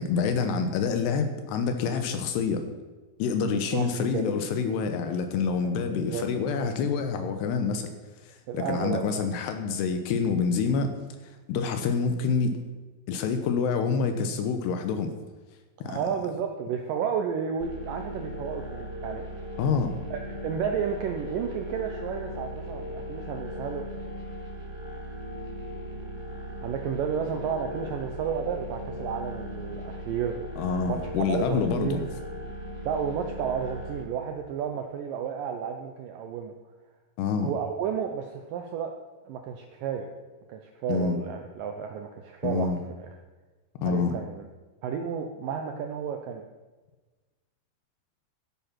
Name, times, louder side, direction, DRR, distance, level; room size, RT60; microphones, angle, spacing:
voice 1, 0.0-2.6 3.2-7.9 8.3-10.9 11.5-12.6 13.1-15.1 15.8-16.0 19.6-19.9 30.6-32.0 37.2-37.5 40.9-41.2 42.4-42.8 43.8-44.1, left 5 dB, 80° left, 7 dB, 3.1 m, -27 dB
voice 2, 3.4-3.9 4.1-4.3 5.6-5.7 6.0-6.3 8.5-9.3 15.8-19.3 20.1-23.8 26.6-32.1 32.9-36.5 37.4-38.9 39.3-40.1 40.5-43.1 43.8-44.5 44.8-46.5, right 7 dB, 75° right, 5 dB, 2.1 m, -32 dB
sound 1, 17.6-34.0, equal, 25° right, 2.1 m, -38 dB
13.0 x 11.0 x 5.9 m, 1.3 s
omnidirectional pair, 4.8 m